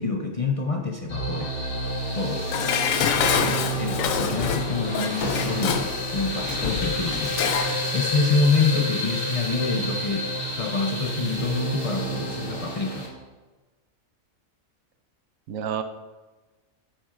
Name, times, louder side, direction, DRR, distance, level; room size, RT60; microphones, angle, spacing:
voice 1, 0.0-1.5 2.1-2.5 3.5-7.3 7.9-10.3 10.6-13.1, left 4 dB, 60° left, 2 dB, 0.3 m, -26 dB
sound 1, 1.1-13.1, right 1 dB, 40° left, 1.6 m, -29 dB
Dishes pots and pans, 2.5-7.8 8.1-8.2, left 8 dB, 75° left, 1.0 m, -26 dB
voice 2, 3.2-3.9 15.5-15.8, right 7 dB, 75° right, 8 dB, 1.0 m, -32 dB
10.0 x 7.3 x 2.5 m, 1.2 s
omnidirectional pair, 1.4 m